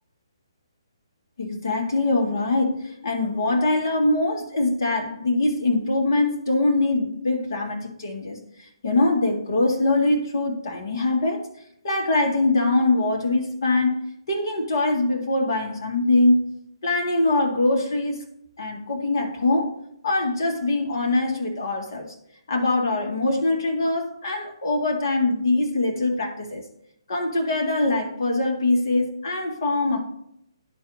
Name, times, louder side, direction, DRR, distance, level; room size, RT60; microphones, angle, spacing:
voice 1, 1.4-11.5 11.8-16.5 16.8-18.3 18.6-19.8 20.0-22.1 22.5-26.6 27.1-30.0, left 2 dB, 55° left, 1 dB, 1.7 m, -23 dB
12.5 x 4.5 x 2.6 m, 0.75 s
figure-of-eight pair, 135°, 3 cm